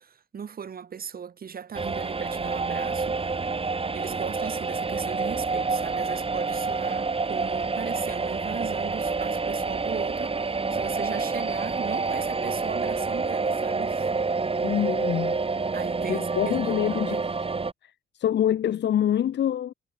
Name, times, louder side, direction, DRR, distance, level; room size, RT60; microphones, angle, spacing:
voice 1, 0.0-3.1 3.9-14.1 15.7-17.3, right 7 dB, 50° right, 4.7 m, -37 dB
sound 1, 1.7-17.7, right 4 dB, 30° right, 5.8 m, -28 dB
voice 2, 14.6-15.4 16.1-17.2 17.8-17.9 18.2-19.7, left 10 dB, 60° left, 1.4 m, -25 dB
cardioid pair, 90°, 20 cm